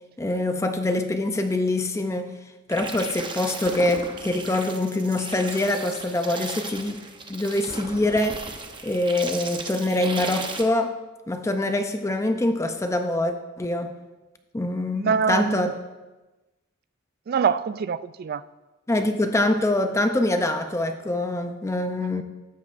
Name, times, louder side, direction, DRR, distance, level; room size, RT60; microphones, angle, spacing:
voice 1, 0.2-2.3 2.7-7.0 7.3-8.4 8.8-11.0 11.3-13.9 14.5-15.8 18.9-22.2, left 2 dB, 15° left, 0.5 m, -24 dB
sound 1, 2.7-10.6, right 3 dB, 25° right, 0.8 m, -36 dB
voice 2, 15.0-15.7 17.3-18.4 22.0-22.2, right 6 dB, 45° right, 0.3 m, -25 dB
13.0 x 9.4 x 2.5 m
head